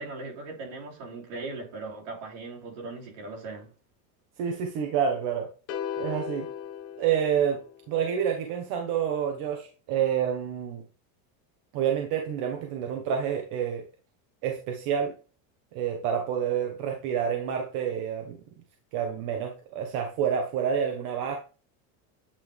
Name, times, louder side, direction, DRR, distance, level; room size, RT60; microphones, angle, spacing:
voice 1, 0.0-3.7, right 3 dB, 70° right, 3.2 m, -39 dB
voice 2, 4.4-5.5 6.0-6.5 7.0-7.6 7.9-10.8 11.7-13.8 14.4-15.1 15.7-18.4 18.9-21.4, right 8 dB, 45° right, 1.0 m, -28 dB
sound 1, 5.7-8.0, left 9 dB, 30° left, 0.8 m, -36 dB
8.7 x 3.2 x 3.6 m
cardioid pair, 165°, 44 cm